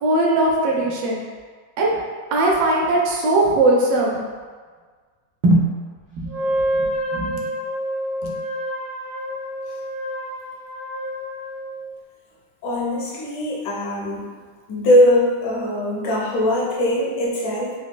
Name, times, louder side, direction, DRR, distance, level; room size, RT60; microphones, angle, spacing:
voice 1, 0.0-1.2 1.8-2.0 2.3-4.2 5.4-5.7 6.1-6.5 6.8-7.4 8.2-8.4, right 2 dB, 80° right, -2 dB, 1.3 m, -19 dB
Wind instrument woodwind instrument, 6.3-11.9, equal, 5° right, 0.6 m, -28 dB
voice 2, 12.6-14.2 14.7-17.7, left 1 dB, 75° left, -4 dB, 1.3 m, -20 dB
4.2 x 2.2 x 2.2 m, 1.5 s
omnidirectional pair, 2.0 m